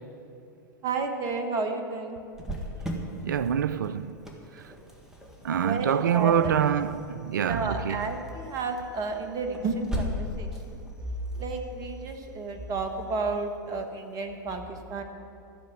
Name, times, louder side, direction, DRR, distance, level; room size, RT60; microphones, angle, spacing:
voice 1, 0.8-2.2 5.5-6.5 7.4-10.8 11.4-15.0, right 3 dB, 35° right, 1.4 m, -32 dB
Cricket, 2.3-13.8, equal, 5° right, 1.8 m, -39 dB
voice 2, 3.2-4.2 5.4-8.1, right 8 dB, 70° right, 0.4 m, -26 dB
13.5 x 6.6 x 8.8 m
figure-of-eight pair, 90°, 11 cm